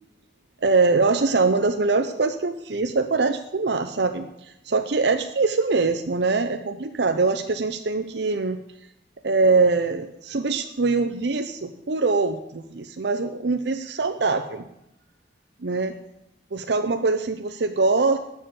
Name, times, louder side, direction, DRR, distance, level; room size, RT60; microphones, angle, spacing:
voice 1, 0.6-8.6 9.2-14.6 15.6-15.9 16.5-18.2, right 3 dB, 65° right, 7 dB, 0.7 m, -23 dB
13.5 x 5.6 x 8.6 m, 0.83 s
head